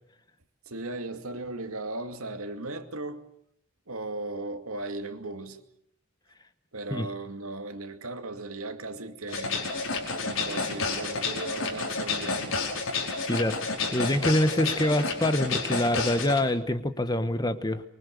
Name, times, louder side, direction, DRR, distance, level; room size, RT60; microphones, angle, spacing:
voice 1, 0.7-3.3 3.9-5.6 6.7-9.7 10.2-12.6, right 2 dB, 90° right, 2.4 m, -37 dB
sound 1, 9.3-16.4, left 4 dB, 70° left, 4.9 m, -30 dB
voice 2, 13.2-17.8, left 1 dB, 20° left, 1.3 m, -26 dB
25.0 x 24.5 x 6.8 m
head